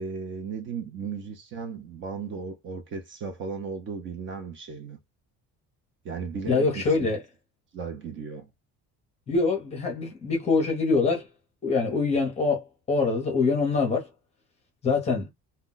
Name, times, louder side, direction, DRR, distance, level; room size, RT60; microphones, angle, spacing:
voice 1, 0.0-5.0 6.0-7.2 7.7-8.5, right 5 dB, 40° right, 0.6 m, -36 dB
voice 2, 6.5-7.2 9.3-11.3 11.6-14.1 14.8-15.3, left 4 dB, 20° left, 0.7 m, -24 dB
2.2 x 2.2 x 3.7 m
cardioid pair, 180°, 31 cm